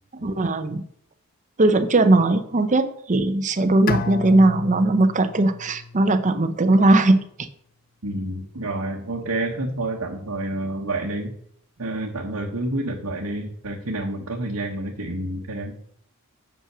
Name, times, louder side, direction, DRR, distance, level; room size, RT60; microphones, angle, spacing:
voice 1, 0.2-0.8 1.6-7.2, right 2 dB, 35° right, 9 dB, 0.7 m, -19 dB
Bowed string instrument, 3.9-6.9, left 4 dB, 40° left, 0.3 m, -32 dB
voice 2, 8.0-11.3 11.8-15.8, right 1 dB, 75° right, -1 dB, 1.2 m, -29 dB
7.4 x 5.6 x 6.0 m, 0.65 s
head